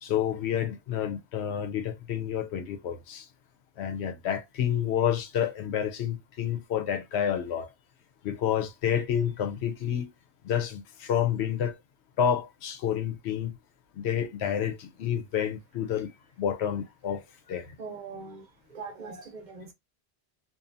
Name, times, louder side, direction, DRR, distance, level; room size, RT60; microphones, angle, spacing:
voice 1, 0.0-3.3 3.8-7.7 8.2-10.1 10.4-11.7 12.2-13.5 14.0-16.1 16.4-17.2 17.5-17.7, left 9 dB, 90° left, 0.9 m, -29 dB
voice 2, 17.8-19.7, right 4 dB, 50° right, 0.7 m, -42 dB
2.7 x 2.3 x 2.4 m
omnidirectional pair, 1.1 m